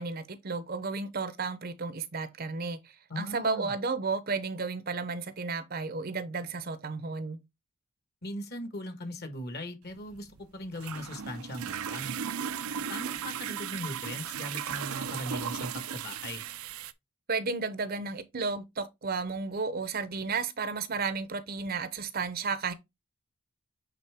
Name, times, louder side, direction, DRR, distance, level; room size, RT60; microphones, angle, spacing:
voice 1, 0.0-2.8 3.2-7.4 17.3-22.7, right 4 dB, 45° right, 0.7 m, -33 dB
voice 2, 3.1-3.7 8.2-12.1 12.9-16.4, left 1 dB, 50° left, 1.5 m, -39 dB
sound 1, 9.9-16.9, right 8 dB, 85° right, 0.6 m, -36 dB
8.4 x 3.6 x 3.5 m
head